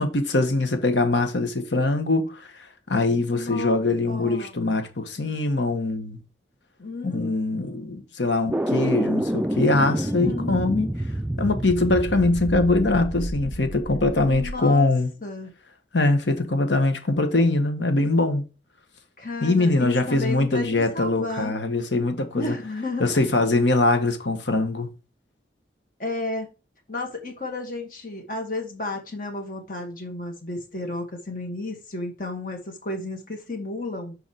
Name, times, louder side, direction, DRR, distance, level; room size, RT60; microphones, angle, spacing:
voice 1, 0.0-2.4 2.9-6.2 7.0-10.9 11.4-15.1 15.9-18.4 19.4-22.6 23.0-24.9, left 2 dB, 85° left, 1.5 m, -22 dB
voice 2, 3.2-3.8 4.1-4.6 5.2-5.4 6.8-7.9 9.9-10.8 14.2-14.9 15.2-15.5 19.2-21.6 22.4-23.1 26.0-26.5 26.9-34.2, left 2 dB, 50° left, 2.2 m, -33 dB
sound 1, 8.5-14.6, right 1 dB, 10° right, 0.4 m, -28 dB
6.9 x 4.8 x 4.9 m
head